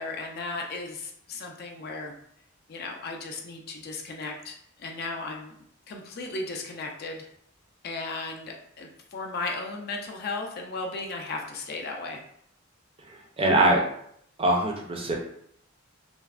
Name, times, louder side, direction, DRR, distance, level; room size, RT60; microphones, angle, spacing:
voice 1, 0.0-2.1 2.7-5.5 5.9-7.3 7.8-12.2, left 3 dB, 50° left, 2 dB, 0.4 m, -35 dB
voice 2, 13.1-13.8 14.4-15.1, right 1 dB, 25° right, 0 dB, 0.4 m, -23 dB
3.2 x 2.0 x 2.4 m, 0.68 s
head